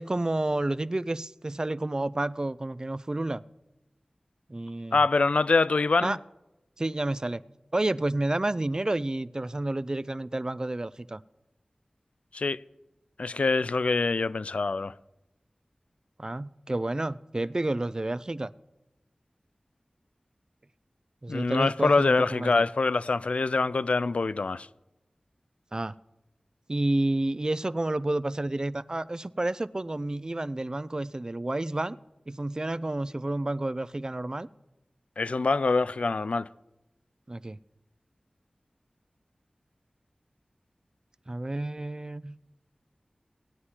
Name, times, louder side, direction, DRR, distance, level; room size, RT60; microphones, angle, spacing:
voice 1, 0.0-3.4 4.5-5.0 6.0-6.2 6.8-7.4 7.7-11.2 16.2-18.5 21.2-22.6 25.7-25.9 26.7-32.0 32.3-34.5 37.3-37.6 41.3-42.4, right 2 dB, 35° right, 0.4 m, -30 dB
voice 2, 4.9-6.2 12.3-12.6 13.2-14.9 21.3-24.7 35.2-36.5, left 3 dB, 75° left, 0.3 m, -25 dB
18.0 x 9.5 x 2.9 m
wide cardioid pair, 45°, 2 cm